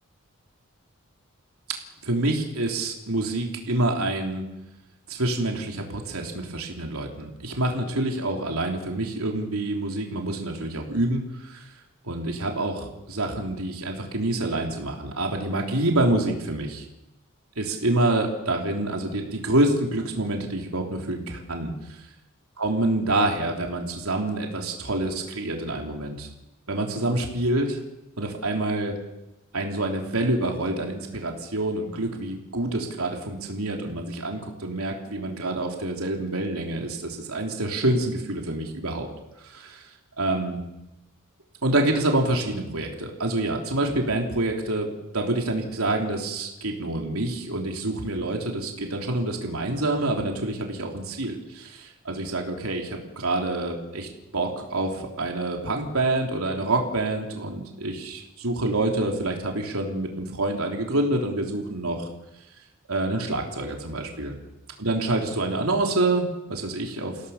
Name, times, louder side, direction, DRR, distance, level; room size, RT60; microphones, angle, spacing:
voice 1, 2.0-4.4 5.1-11.7 12.0-16.8 17.6-22.1 22.6-26.3 26.7-27.8 28.2-28.9 29.5-39.1 39.4-39.8 40.2-40.6 41.6-62.1 62.9-64.4 64.8-67.2, right 2 dB, 85° right, 1 dB, 3.4 m, -27 dB
29.5 x 17.0 x 7.3 m, 0.95 s
head